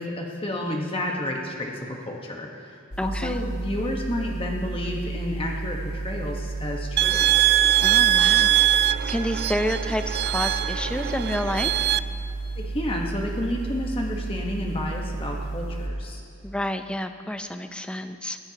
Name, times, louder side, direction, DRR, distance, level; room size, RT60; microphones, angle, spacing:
voice 1, 0.0-2.7 3.0-7.3 12.6-16.2, left 1 dB, 25° left, 0 dB, 1.3 m, -30 dB
sound 1, 2.9-15.9, right 3 dB, 85° left, 2.1 m, -32 dB
voice 2, 3.0-3.4 7.8-8.5 9.1-11.7 16.4-18.4, equal, 5° left, 8 dB, 0.5 m, -29 dB
sound 2, 7.0-12.0, right 13 dB, 50° right, 0.3 m, -22 dB
21.5 x 15.5 x 3.0 m, 2.7 s
head